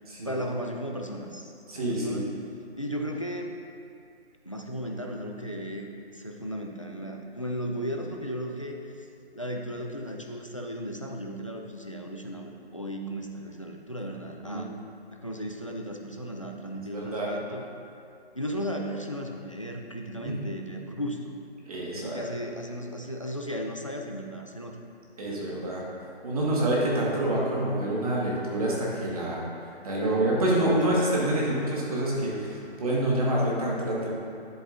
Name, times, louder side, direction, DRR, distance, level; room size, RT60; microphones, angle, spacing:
voice 1, 0.2-2.3 2.8-3.5 4.5-9.1 9.4-14.7 15.1-17.6 18.3-21.3 22.0-24.8 25.3-25.7 30.6-30.8, equal, 30° left, 2 dB, 0.4 m, -35 dB
voice 2, 1.7-2.2 14.4-14.6 16.9-17.3 20.2-20.3 21.7-22.2 25.2-25.8 26.2-34.1, right 1 dB, 35° right, -5 dB, 1.5 m, -27 dB
10.0 x 7.8 x 2.5 m, 2.5 s
hypercardioid pair, 175°, 33 cm